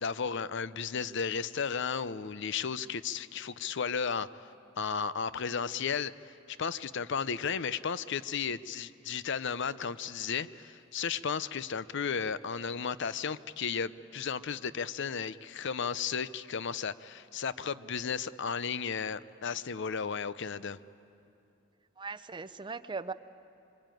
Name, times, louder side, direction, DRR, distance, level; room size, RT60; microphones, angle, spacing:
voice 1, 0.0-4.3 4.8-6.1 6.5-20.8, left 6 dB, 60° left, 15 dB, 0.6 m, -34 dB
voice 2, 22.0-23.1, right 4 dB, 25° right, 14 dB, 0.6 m, -39 dB
24.5 x 24.0 x 9.2 m, 2.7 s
head